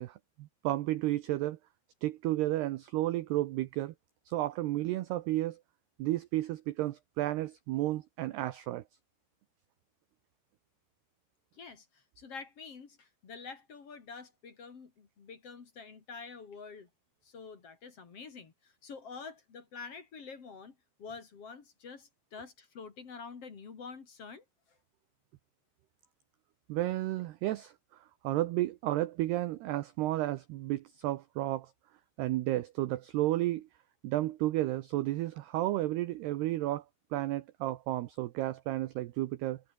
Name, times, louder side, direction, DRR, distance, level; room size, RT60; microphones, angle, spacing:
voice 1, 0.0-1.6 2.0-3.9 4.3-5.6 6.0-8.8 26.7-27.7 28.2-31.7 32.2-33.7 34.0-36.8 37.1-39.6, right 16 dB, 85° right, 2.3 m, -32 dB
voice 2, 11.6-16.9 17.2-24.4, left 5 dB, 40° left, 2.7 m, -47 dB
omnidirectional pair, 6.0 m